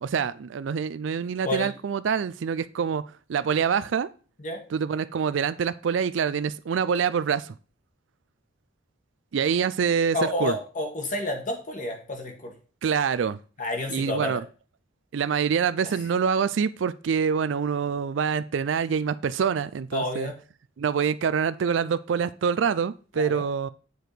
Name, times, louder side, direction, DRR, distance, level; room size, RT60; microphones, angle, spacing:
voice 1, 0.0-3.0 3.3-4.1 4.7-7.5 9.3-10.5 12.8-13.4 13.9-14.4 15.1-20.3 20.8-23.7, right 6 dB, 75° right, 0.4 m, -26 dB
voice 2, 10.1-12.5 13.6-14.4 19.9-20.3 23.2-23.4, left 1 dB, 45° left, 2.0 m, -29 dB
7.9 x 4.6 x 5.1 m
head